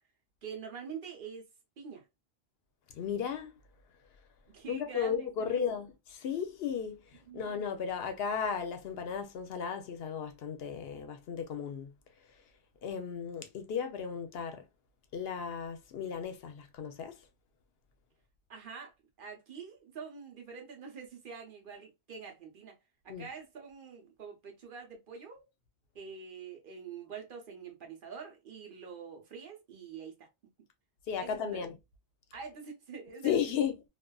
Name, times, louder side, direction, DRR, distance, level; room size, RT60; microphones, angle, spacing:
voice 1, 0.4-1.5 1.8-2.0 4.5-5.6 7.3-7.5 18.5-22.8 23.0-25.4 25.9-30.3 31.2-31.7 32.3-33.4, right 6 dB, 55° right, 0.8 m, -46 dB
voice 2, 2.9-3.6 4.7-11.9 12.8-14.6 15.1-17.2 23.1-23.3 31.1-31.8 33.2-33.9, left 7 dB, 70° left, 0.8 m, -35 dB
2.4 x 2.3 x 2.2 m
omnidirectional pair, 1.1 m